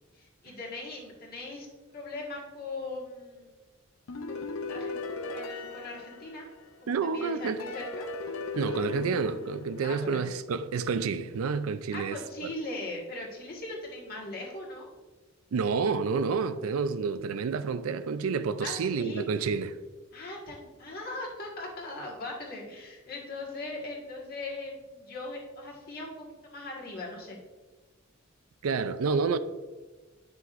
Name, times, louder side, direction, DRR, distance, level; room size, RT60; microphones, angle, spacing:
voice 1, 0.1-1.7 1.9-3.5 4.3-6.4 6.8-8.0 9.8-10.3 11.9-14.9 18.6-19.3 20.1-27.4, left 2 dB, 45° left, 1.6 m, -40 dB
sound 1, 4.1-6.9 7.6-10.4, left 3 dB, 80° left, 0.6 m, -38 dB
voice 2, 6.9-7.6 8.6-12.5 15.5-19.8 28.6-29.4, right 5 dB, 90° right, 0.4 m, -29 dB
9.4 x 5.9 x 2.5 m
head